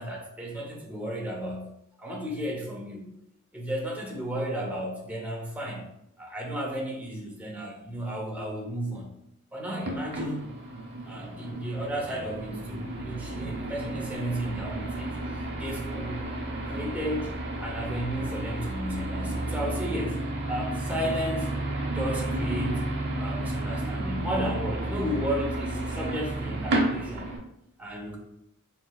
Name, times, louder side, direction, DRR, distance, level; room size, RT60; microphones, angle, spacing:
voice 1, 0.0-1.7 2.0-3.1 3.5-5.9 6.2-9.1 9.5-10.5 11.0-16.2 16.7-20.2 20.5-21.5 21.9-22.8 23.2-27.3 27.8-28.2, equal, 5° right, -2 dB, 0.7 m, -33 dB
sound 1, 9.8-27.4, right 2 dB, 50° right, 0.8 m, -32 dB
4.4 x 4.0 x 2.3 m, 0.81 s
head